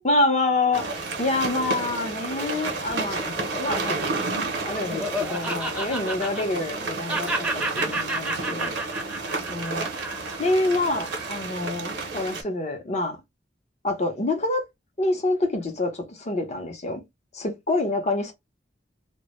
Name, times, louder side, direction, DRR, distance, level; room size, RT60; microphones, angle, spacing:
voice 1, 0.0-4.0 4.6-8.8 9.5-9.9 10.4-13.2 13.8-14.6 15.0-17.0 17.3-18.3, left 2 dB, 35° left, 0.6 m, -27 dB
sound 1, 0.7-12.4, right 3 dB, 65° right, 0.6 m, -31 dB
Laughter, 2.6-6.8 7.1-11.5, right 1 dB, 5° right, 0.5 m, -31 dB
2.1 x 2.0 x 2.9 m
head